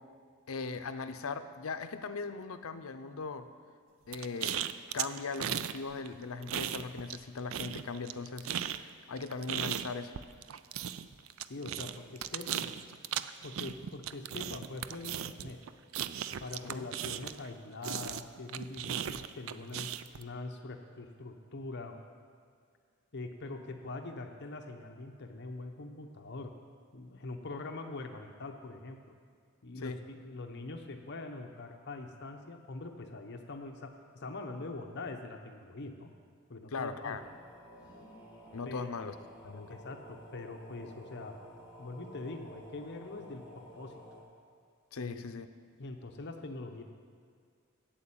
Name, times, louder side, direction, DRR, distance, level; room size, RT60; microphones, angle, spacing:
voice 1, 0.5-3.5 4.1-10.1 16.6-16.9 29.8-30.0 36.7-37.2 38.5-39.1 39.4-39.8 44.9-45.5, left 4 dB, 85° left, 10 dB, 0.6 m, -39 dB
sound 1, 4.1-5.8 6.0-7.2 7.5-17.5 17.8-20.2, right 10 dB, 70° right, 0.4 m, -37 dB
voice 2, 11.5-12.8 13.4-15.6 16.4-22.0 23.1-26.5 26.9-29.0 29.6-36.1 36.5-37.2 38.6-38.9 39.7-44.0 45.0-45.2 45.8-46.8, left 2 dB, 55° left, 4 dB, 0.8 m, -43 dB
sound 2, 37.0-44.2, equal, 5° right, 3.1 m, -52 dB
8.7 x 7.7 x 8.8 m, 2.1 s
head